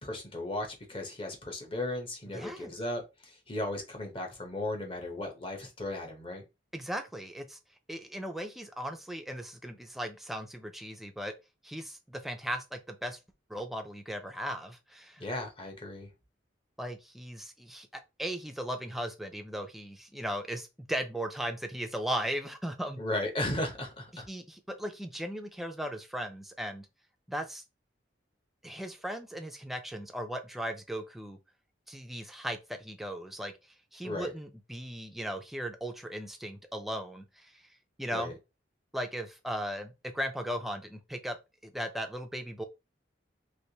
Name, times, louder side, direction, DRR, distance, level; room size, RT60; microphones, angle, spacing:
voice 1, 0.0-6.4 15.2-16.1 23.0-24.3 34.0-34.3 38.1-38.3, left 1 dB, 25° left, 0.8 m, -36 dB
voice 2, 2.3-2.7 6.7-7.6 7.9-11.3 11.6-13.2 13.5-15.2 16.8-23.0 24.1-26.9 27.3-27.6 28.6-31.4 31.9-33.5 33.9-37.5 38.0-38.3 38.9-41.4 41.6-42.6, equal, ahead, 0.3 m, -37 dB
3.3 x 2.9 x 2.8 m
head